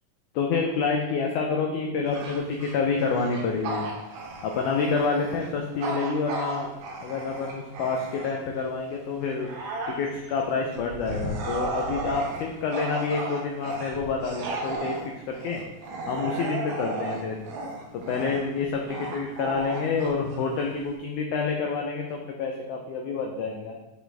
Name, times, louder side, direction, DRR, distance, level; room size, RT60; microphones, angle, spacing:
voice 1, 0.3-3.9 4.4-6.7 7.0-9.5 9.9-15.0 15.3-15.6 16.1-17.4 17.9-23.8, left 4 dB, 80° left, 1 dB, 1.8 m, -28 dB
Bark / Growling, 2.0-8.6 9.1-21.0, right 3 dB, 80° right, 3.0 m, -35 dB
7.8 x 4.9 x 3.4 m, 0.97 s
omnidirectional pair, 4.3 m